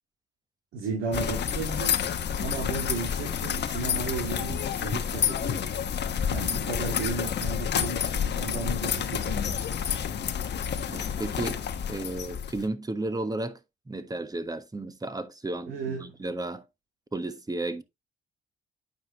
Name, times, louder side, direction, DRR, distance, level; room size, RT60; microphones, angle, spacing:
voice 1, 0.7-5.7 6.3-10.0 15.7-16.2, right 4 dB, 80° right, 2.2 m, -35 dB
sound 1, 1.1-12.7, left 8 dB, 60° left, 1.1 m, -29 dB
voice 2, 10.9-13.6 13.9-16.6 17.1-17.8, right 2 dB, 20° right, 1.3 m, -33 dB
9.1 x 5.1 x 3.0 m
hypercardioid pair, 55°, 20 cm